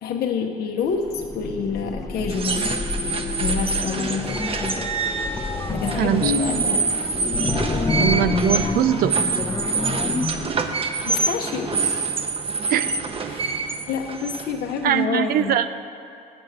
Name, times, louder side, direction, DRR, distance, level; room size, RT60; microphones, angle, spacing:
voice 1, 0.0-2.7 3.4-4.7 5.7-6.8 11.0-12.1 13.3-13.5 13.9-15.7, left 5 dB, 65° left, 2 dB, 0.8 m, -27 dB
sound 1, 0.9-10.5, left 3 dB, 20° left, 0.6 m, -28 dB
sound 2, 2.3-15.0, right 4 dB, 35° right, 0.7 m, -26 dB
voice 2, 6.0-6.3 8.0-9.1 12.7-12.9 14.8-15.7, right 11 dB, 60° right, 11 dB, 0.4 m, -21 dB
7.8 x 7.2 x 7.8 m, 2.7 s
cardioid pair, 110°, 17 cm